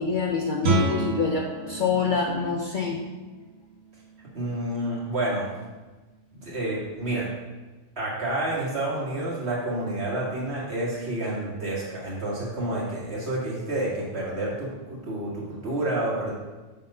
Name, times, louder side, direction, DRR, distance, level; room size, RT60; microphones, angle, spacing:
voice 1, 0.0-3.0, left 5 dB, 55° left, 1 dB, 0.6 m, -26 dB
Guitar, 0.6-6.2, right 4 dB, 85° right, 1.3 m, -32 dB
voice 2, 4.3-5.5 6.3-7.3 8.0-16.3, right 1 dB, 60° right, -6 dB, 2.0 m, -29 dB
6.6 x 3.5 x 5.4 m, 1.2 s
omnidirectional pair, 1.3 m